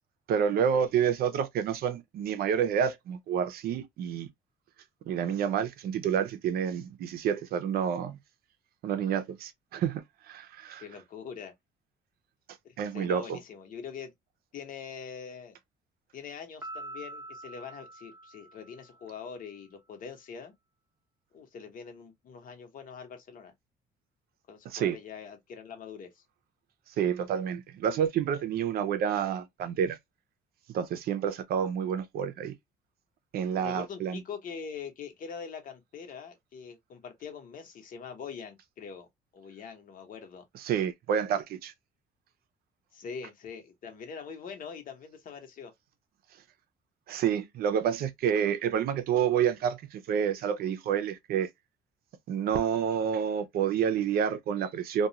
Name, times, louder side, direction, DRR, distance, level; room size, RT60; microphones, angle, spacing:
voice 1, 0.3-4.3 5.1-8.2 8.8-10.8 12.8-13.4 24.7-25.0 27.0-30.0 30.7-32.5 33.3-34.2 40.6-41.7 47.1-51.5 52.3-55.1, right 8 dB, 65° right, 0.6 m, -29 dB
voice 2, 10.8-11.5 12.6-14.1 14.5-15.6 16.1-20.5 21.3-23.5 24.5-26.2 33.6-39.1 39.3-40.4 42.9-45.7, left 6 dB, 55° left, 1.0 m, -43 dB
Piano, 16.6-19.2, right 1 dB, 15° right, 0.8 m, -45 dB
2.4 x 2.3 x 2.8 m
cardioid pair, 110°, 17 cm